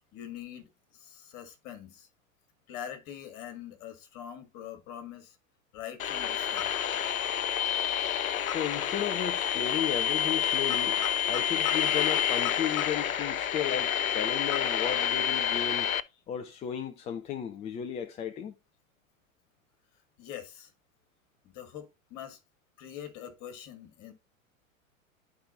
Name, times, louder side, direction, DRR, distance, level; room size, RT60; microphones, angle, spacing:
voice 1, 0.1-2.1 2.7-5.4 5.7-6.7 20.2-20.7 21.4-22.4 22.8-24.1, left 10 dB, 40° left, 2.1 m, -44 dB
sound 1, 6.0-16.0, left 9 dB, 75° left, 0.6 m, -28 dB
voice 2, 8.5-15.9 16.3-18.5, left 9 dB, 15° left, 0.5 m, -34 dB
11.5 x 4.8 x 2.6 m
figure-of-eight pair, 90°, 41 cm